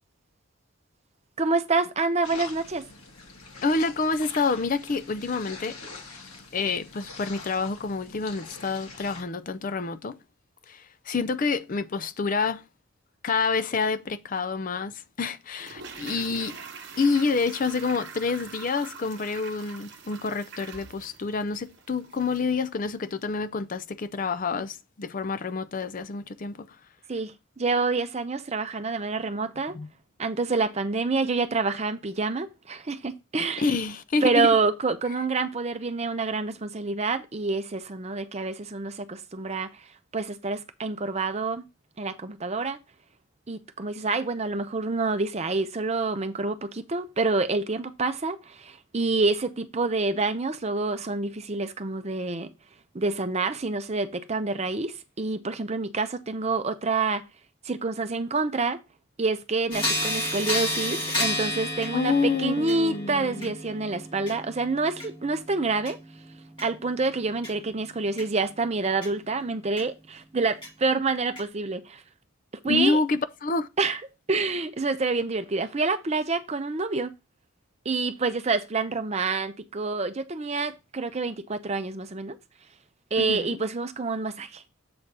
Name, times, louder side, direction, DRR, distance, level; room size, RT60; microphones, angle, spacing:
voice 1, 1.4-2.8 27.1-29.8 30.2-33.7 34.2-39.9 40.1-41.6 42.0-42.8 43.5-52.5 52.9-57.2 57.6-58.8 59.2-66.0 66.6-72.0 72.6-73.0 73.8-74.0 74.3-77.1 77.8-82.4 83.1-84.6, right 3 dB, 30° right, 0.6 m, -27 dB
sound 1, 2.2-9.2, left 3 dB, 80° left, 2.0 m, -44 dB
voice 2, 3.6-5.8 6.1-6.2 6.5-10.2 10.7-12.6 13.2-16.6 17.0-26.8 29.7-29.9 33.6-34.5 61.9-63.5 72.6-73.7 83.2-83.6, left 4 dB, 40° left, 0.5 m, -28 dB
Toilet flush, 15.5-22.6 22.9-23.0, right 5 dB, 50° right, 1.1 m, -44 dB
sound 2, 59.7-69.1 69.8-69.9 70.6-70.7 71.4-71.5, left 1 dB, 25° left, 2.3 m, -32 dB
7.8 x 4.1 x 4.7 m
head